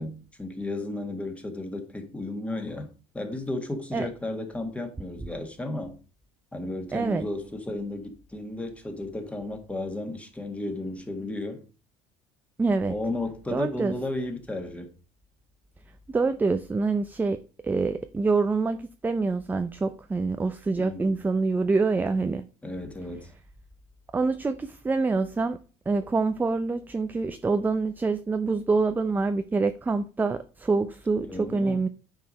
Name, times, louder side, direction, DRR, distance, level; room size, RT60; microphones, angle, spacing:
voice 1, 0.0-6.0 6.5-11.6 12.9-14.9 20.8-21.1 22.6-23.3 31.2-31.8, left 2 dB, 10° left, 1.8 m, -34 dB
voice 2, 6.9-7.3 12.6-12.9 13.5-13.9 16.1-17.4 17.6-22.4 24.1-25.6 25.9-31.9, right 3 dB, 10° right, 0.5 m, -26 dB
9.3 x 4.9 x 5.4 m
cardioid pair, 135°, 16 cm